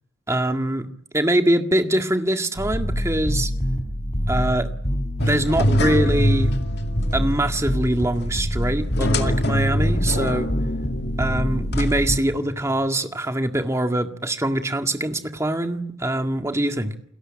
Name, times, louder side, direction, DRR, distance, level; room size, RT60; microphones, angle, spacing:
voice 1, 0.3-0.9 1.1-3.5 4.3-4.7 5.2-6.5 7.1-10.5 11.2-16.9, right 1 dB, 15° right, 6 dB, 1.9 m, -23 dB
sound 1, 2.6-12.2, equal, 35° left, 3.8 m, -25 dB
sound 2, 5.2-12.8, left 1 dB, 55° left, 2.4 m, -26 dB
30.0 x 22.0 x 8.9 m, 0.69 s
head